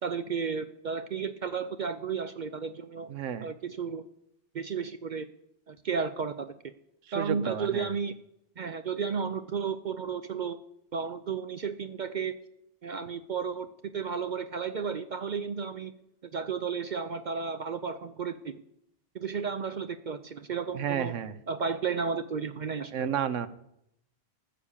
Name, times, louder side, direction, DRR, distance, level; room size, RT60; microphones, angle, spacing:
voice 1, 0.0-3.1 3.4-4.0 4.5-5.3 5.7-6.7 7.1-8.2 8.6-10.6 10.9-12.4 12.8-15.9 16.3-18.5 19.1-21.1 21.5-23.1, right 6 dB, 55° right, 11 dB, 0.5 m, -33 dB
voice 2, 3.1-3.5 7.1-7.9 20.7-21.3 22.9-23.5, right 8 dB, 85° right, 14 dB, 1.1 m, -31 dB
14.5 x 6.8 x 7.2 m, 0.78 s
omnidirectional pair, 1.3 m